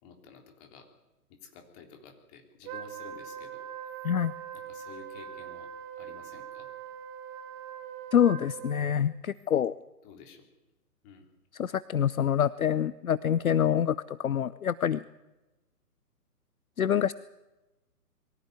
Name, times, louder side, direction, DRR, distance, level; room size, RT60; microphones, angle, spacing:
voice 1, 0.0-0.9 1.3-3.7 4.5-5.7 5.9-6.7 10.0-10.5 11.0-11.3, left 6 dB, 25° left, 4 dB, 3.6 m, -51 dB
Wind instrument woodwind instrument, 2.6-9.0, right 9 dB, 15° right, 1.2 m, -42 dB
voice 2, 8.1-9.7 11.6-15.0 16.8-17.1, left 9 dB, 60° left, 18 dB, 0.7 m, -26 dB
23.0 x 15.0 x 9.4 m, 1.1 s
figure-of-eight pair, 135°, 47 cm